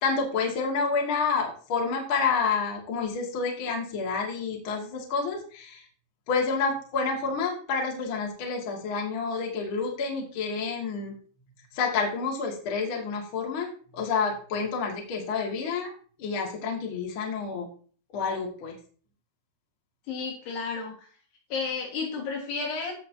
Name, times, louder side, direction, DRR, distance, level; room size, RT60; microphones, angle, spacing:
voice 1, 0.0-5.8 6.3-11.1 11.7-13.7 13.9-15.9 16.2-17.7 18.1-18.7, left 5 dB, 40° left, 0 dB, 2.0 m, -29 dB
voice 2, 20.1-20.9 21.5-22.9, left 4 dB, 70° left, -1 dB, 3.7 m, -32 dB
16.0 x 5.8 x 2.8 m, 0.43 s
omnidirectional pair, 5.1 m